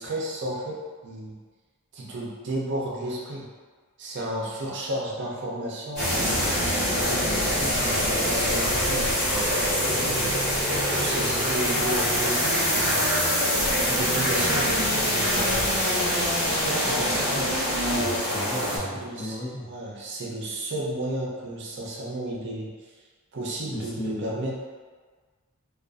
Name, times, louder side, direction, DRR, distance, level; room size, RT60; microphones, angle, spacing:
voice 1, 0.0-1.4 1.9-3.5 4.0-6.6 7.0-10.4 11.0-13.0 13.8-16.0 16.5-17.5 18.6-22.7 23.3-24.5, right 1 dB, 50° right, -4 dB, 0.5 m, -33 dB
sound 1, 6.0-18.8, equal, 30° left, 1.4 m, -24 dB
voice 2, 17.9-18.8 19.1-19.7 23.7-24.3, left 1 dB, 75° left, -5 dB, 0.7 m, -34 dB
2.4 x 2.3 x 2.4 m, 1.5 s
head